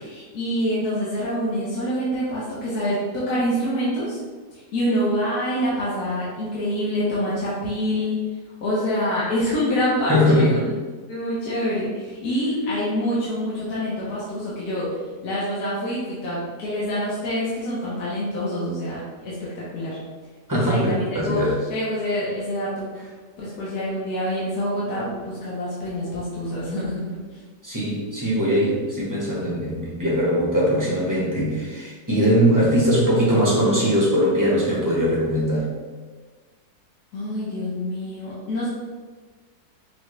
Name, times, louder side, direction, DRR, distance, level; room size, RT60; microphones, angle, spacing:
voice 1, 0.0-4.2 4.5-8.2 8.6-10.6 11.1-14.9 15.2-20.0 20.6-21.4 21.7-22.9 23.4-27.4 37.1-38.7, equal, 65° left, -8 dB, 1.5 m, -26 dB
voice 2, 10.1-10.7 20.5-21.6 27.6-35.7, equal, 15° right, -6 dB, 0.8 m, -21 dB
6.0 x 2.3 x 3.1 m, 1.4 s
omnidirectional pair, 1.8 m